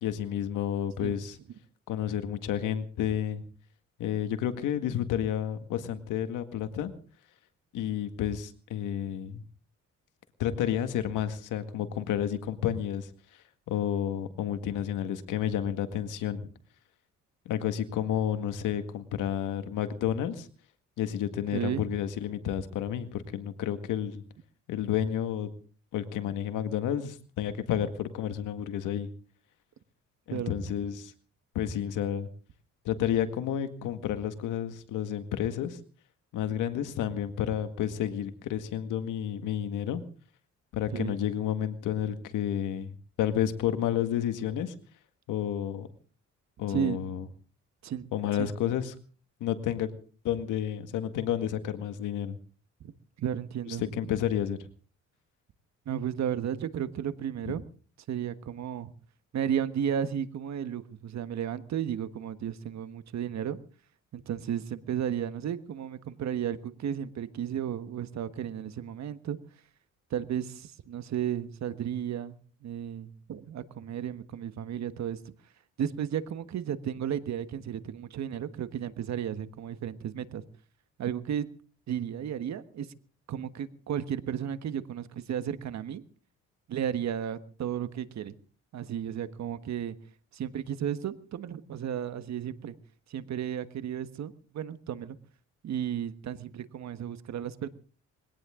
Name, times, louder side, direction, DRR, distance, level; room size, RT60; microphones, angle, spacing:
voice 1, 0.0-1.4 1.9-3.4 4.0-6.9 7.7-9.4 10.4-13.1 13.7-16.5 17.5-20.5 21.0-24.2 24.7-25.5 25.9-29.1 30.3-31.1 31.6-32.3 32.9-35.8 36.3-40.0 40.7-44.7 45.3-45.9 46.6-47.2 48.1-48.9 49.4-49.9 50.2-52.4 53.7-54.6 57.5-57.6, left 10 dB, 90° left, 9 dB, 1.9 m, -31 dB
voice 2, 21.5-21.9 30.3-30.6 40.9-41.2 46.7-47.0 47.8-48.1 48.4-48.8 52.8-52.9 53.2-53.8 55.8-57.6 58.1-58.9 59.3-63.6 64.1-69.4 70.1-75.3 75.8-80.4 81.0-81.5 81.9-82.9 83.3-86.0 86.7-88.3 88.7-90.0 90.3-92.8 93.1-95.2 95.6-97.7, right 9 dB, 65° right, 12 dB, 1.5 m, -33 dB
21.5 x 17.5 x 3.8 m, 0.41 s
cardioid pair, 90°, 30 cm